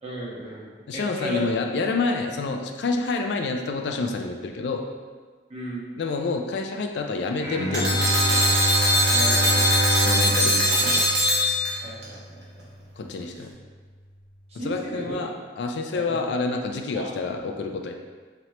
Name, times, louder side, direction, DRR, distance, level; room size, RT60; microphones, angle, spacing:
voice 1, 0.0-1.5 5.5-5.9 9.1-9.7 11.8-12.7 13.3-13.4 14.5-15.2 15.9-16.5 16.9-17.1, equal, 35° right, -7 dB, 1.1 m, -35 dB
voice 2, 0.9-4.8 6.0-8.4 10.0-11.1 13.0-13.5 14.6-15.3 15.6-17.9, left 3 dB, 65° left, 3 dB, 0.3 m, -28 dB
Bowed string instrument, 7.4-12.6, equal, 15° right, 1.2 m, -27 dB
sound 1, 7.7-12.0, equal, 65° right, 1.1 m, -21 dB
4.3 x 3.0 x 2.9 m, 1.5 s
head